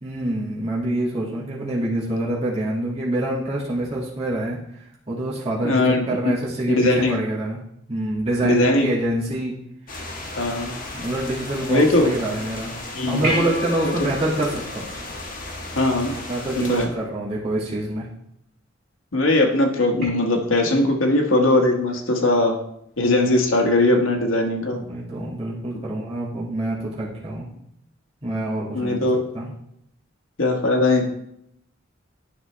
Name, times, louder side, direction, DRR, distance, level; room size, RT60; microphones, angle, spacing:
voice 1, 0.0-4.6 5.1-7.6 7.9-9.6 9.9-10.1 10.9-12.7 13.1-14.8 16.1-18.1 24.7-27.5 28.2-29.1 29.3-29.5, right 1 dB, 30° right, -8 dB, 2.1 m, -26 dB
voice 2, 5.6-6.1 6.7-7.2 8.4-8.9 10.4-10.8 11.7-12.1 12.9-13.2 15.7-16.1 16.6-16.9 19.1-22.6 23.0-24.8 28.7-29.2 30.4-31.0, left 2 dB, 90° left, 2 dB, 1.4 m, -19 dB
sound 1, 9.9-16.9, left 2 dB, 45° left, 1.5 m, -35 dB
sound 2, 13.2-15.9 20.0-20.1, equal, 55° right, 3.4 m, -30 dB
10.5 x 5.5 x 3.3 m, 0.75 s
head